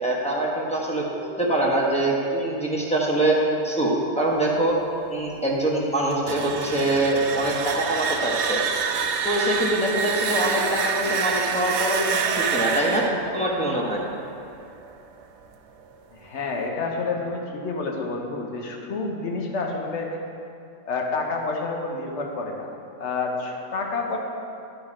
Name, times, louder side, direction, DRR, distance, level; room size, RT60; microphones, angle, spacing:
voice 1, 0.0-3.4 3.6-4.8 5.1-8.6 9.2-13.0 13.3-14.0, right 1 dB, 5° left, -4 dB, 0.9 m, -24 dB
sound 1, 6.1-14.9, right 5 dB, 65° right, 0.8 m, -27 dB
voice 2, 16.1-20.2 20.9-22.7 23.0-24.2, left 3 dB, 60° left, 1 dB, 1.2 m, -29 dB
11.0 x 3.9 x 4.9 m, 2.6 s
omnidirectional pair, 1.4 m